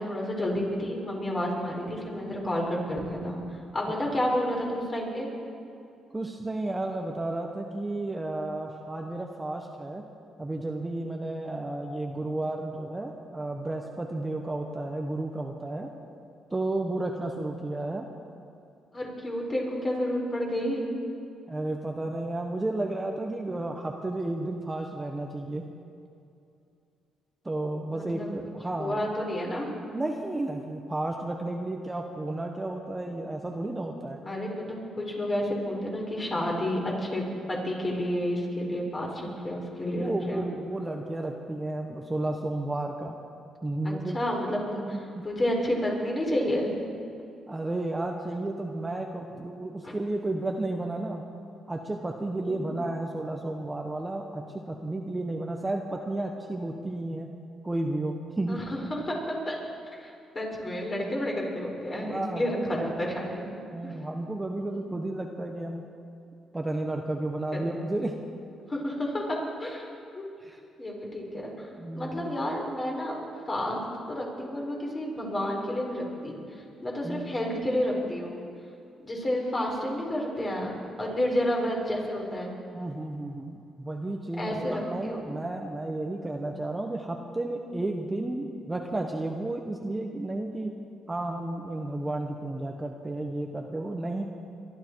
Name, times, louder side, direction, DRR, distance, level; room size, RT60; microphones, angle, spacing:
voice 1, 0.0-5.3 18.9-20.9 27.9-28.3 28.8-29.7 34.2-40.5 43.8-45.0 45.2-46.7 49.8-49.9 52.4-52.7 58.5-59.6 59.9-63.9 64.6-64.9 67.5-67.9 68.7-69.9 70.1-70.3 70.8-71.7 71.9-73.8 74.1-78.4 79.0-80.7 81.0-82.5 84.4-85.3, left 1 dB, 30° left, -1 dB, 4.5 m, -30 dB
voice 2, 6.1-10.0 10.4-15.9 16.5-18.1 21.5-25.6 27.4-29.0 29.9-34.2 39.1-39.4 40.0-43.1 43.6-44.2 44.8-45.2 47.5-51.2 51.7-57.3 57.6-58.6 62.0-62.7 63.7-65.8 66.5-68.1 70.4-70.6 71.8-72.3 77.0-77.3 82.7-90.7 91.1-94.2, right 2 dB, 15° right, 2 dB, 1.2 m, -32 dB
23.0 x 12.0 x 4.7 m, 2.6 s
cardioid pair, 90°, 0 cm